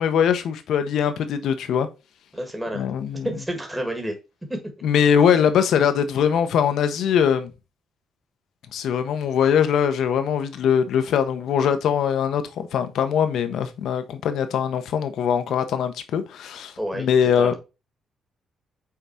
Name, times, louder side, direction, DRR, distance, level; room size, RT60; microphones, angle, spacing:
voice 1, 0.0-1.9 2.7-3.3 4.8-7.5 8.7-17.5, left 8 dB, 75° left, 0.9 m, -22 dB
voice 2, 2.3-2.8 3.2-4.2 4.5-4.6 16.8-17.1 17.4-17.6, equal, 10° right, 1.6 m, -29 dB
5.8 x 3.9 x 4.3 m
cardioid pair, 90°, 0 cm